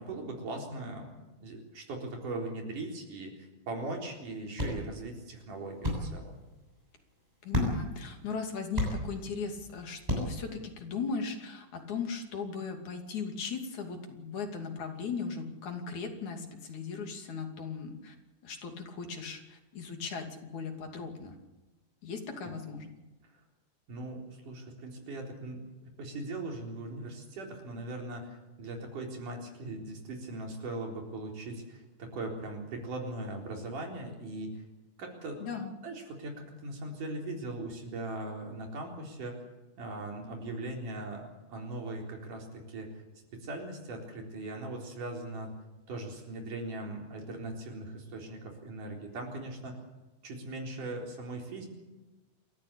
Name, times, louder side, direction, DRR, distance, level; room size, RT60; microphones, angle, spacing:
voice 1, 0.0-6.4 22.4-22.6 23.2-23.3 23.9-34.6 35.0-35.4 35.8-39.4 39.8-43.0 43.3-45.5 45.9-49.8 50.2-51.7, right 2 dB, 85° right, 1 dB, 5.5 m, -40 dB
sound 1, 3.8-10.5, left 1 dB, 10° right, 7.5 m, -36 dB
voice 2, 7.4-18.1 18.4-21.3 22.0-22.9 35.4-35.7, left 5 dB, 70° left, 3 dB, 4.1 m, -38 dB
28.5 x 14.0 x 8.6 m, 1.1 s
omnidirectional pair, 3.6 m